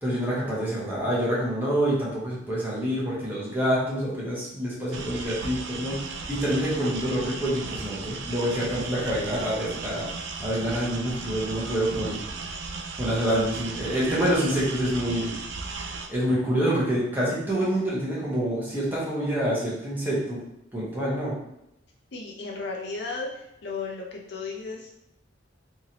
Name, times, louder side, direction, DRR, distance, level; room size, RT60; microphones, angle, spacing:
voice 1, 0.0-10.1 10.4-12.2 13.0-15.3 15.8-20.4 20.7-21.3, equal, 10° right, -7 dB, 0.9 m, -27 dB
sound 1, 4.9-16.1, right 4 dB, 60° right, 0.3 m, -36 dB
voice 2, 22.1-24.9, left 4 dB, 55° left, -1 dB, 0.6 m, -34 dB
2.9 x 2.6 x 2.9 m, 0.82 s
head